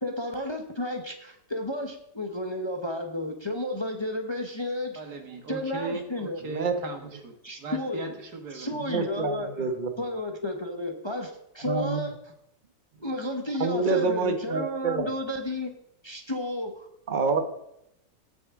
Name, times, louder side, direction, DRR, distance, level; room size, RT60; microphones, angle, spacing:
voice 1, 0.0-5.0 5.5-6.4 7.4-8.1 8.5-9.7 10.0-12.2 13.0-15.7 16.0-16.9, left 1 dB, 20° left, 4 dB, 0.9 m, -32 dB
voice 2, 5.0-9.1, right 3 dB, 90° right, 4 dB, 2.1 m, -38 dB
voice 3, 8.9-9.9 11.6-12.0 13.6-15.1 17.1-17.4, right 4 dB, 35° right, 7 dB, 1.2 m, -27 dB
17.5 x 6.8 x 3.7 m, 0.78 s
omnidirectional pair, 1.6 m